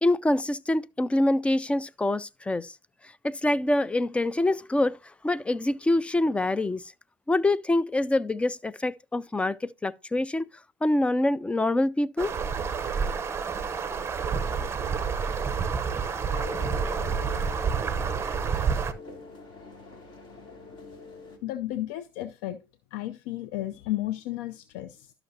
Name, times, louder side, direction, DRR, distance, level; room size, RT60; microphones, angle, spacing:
voice 1, 0.0-2.7 3.2-5.0 5.2-6.9 7.3-10.4 10.8-12.3, left 1 dB, 10° left, 0.3 m, -25 dB
sound 1, 12.2-18.9, right 6 dB, 25° right, 0.8 m, -29 dB
sound 2, 16.3-21.4, left 4 dB, 45° left, 2.3 m, -43 dB
voice 2, 21.4-22.6 22.9-25.1, left 14 dB, 75° left, 0.5 m, -33 dB
12.0 x 5.9 x 2.7 m
supercardioid pair, 95°, 11 cm